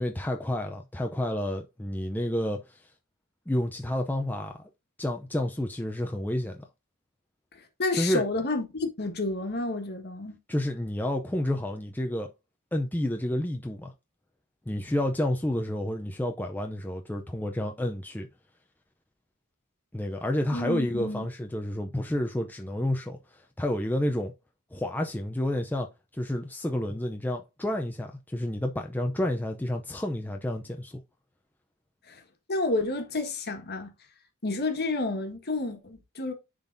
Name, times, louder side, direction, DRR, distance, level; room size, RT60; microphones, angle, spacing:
voice 1, 0.0-2.9 3.5-4.6 5.0-6.7 7.9-8.2 10.5-12.3 12.7-13.9 14.7-18.3 19.9-24.3 24.7-25.9 26.1-31.0, left 1 dB, 10° left, 0.5 m, -30 dB
voice 2, 7.8-10.4 20.5-21.3 32.1-32.2 32.5-33.9 34.4-36.3, left 2 dB, 50° left, 1.5 m, -30 dB
10.5 x 3.9 x 2.6 m
head